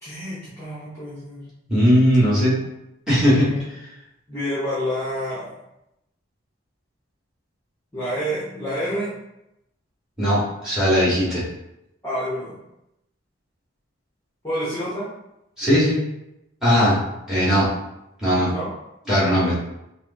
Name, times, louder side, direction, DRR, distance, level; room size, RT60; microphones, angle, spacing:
voice 1, 0.0-1.5 3.3-3.6 4.3-5.5 7.9-9.1 12.0-12.6 14.4-15.1 18.5-18.7 19.2-19.5, equal, 15° left, -11 dB, 0.9 m, -28 dB
voice 2, 1.7-2.6 3.1-3.5 10.2-11.5 15.6-16.0 16.6-17.0 17.3-17.7 18.2-18.5 19.1-19.6, equal, 5° right, -9 dB, 1.4 m, -18 dB
4.7 x 2.1 x 2.7 m, 0.86 s
head